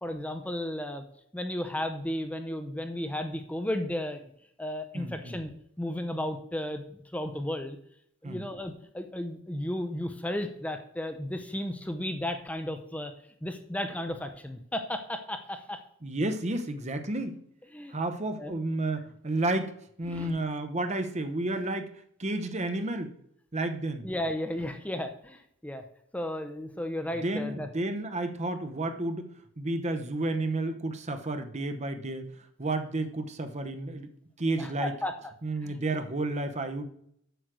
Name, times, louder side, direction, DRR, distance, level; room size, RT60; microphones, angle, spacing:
voice 1, 0.0-1.0 1.3-4.3 4.6-5.5 5.8-7.8 8.2-13.1 13.4-15.8 17.7-17.9 18.4-18.6 20.1-20.3 24.0-25.8 26.1-27.7 34.6-35.1 35.6-35.8, left 1 dB, 5° left, 7 dB, 0.6 m, -34 dB
voice 2, 4.9-5.4 8.2-8.4 16.0-17.4 17.9-21.9 22.2-23.1 23.5-24.1 27.2-29.3 29.6-32.3 32.6-34.1 34.4-34.9 35.4-36.8, right 2 dB, 35° right, 8 dB, 0.9 m, -31 dB
8.0 x 6.3 x 6.2 m, 0.68 s
head